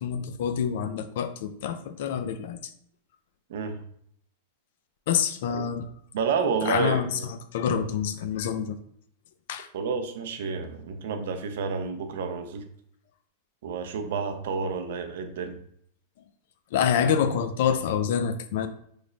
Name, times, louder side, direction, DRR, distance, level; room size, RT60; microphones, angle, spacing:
voice 1, 0.0-2.6 5.1-5.9 6.6-7.2 7.5-8.8 9.5-9.7 16.7-18.7, left 7 dB, 70° left, 9 dB, 0.4 m, -26 dB
voice 2, 6.1-7.3 9.7-12.7 13.6-15.6, right 5 dB, 75° right, 7 dB, 0.5 m, -30 dB
3.2 x 2.0 x 3.8 m, 0.67 s
hypercardioid pair, 120°, 0 cm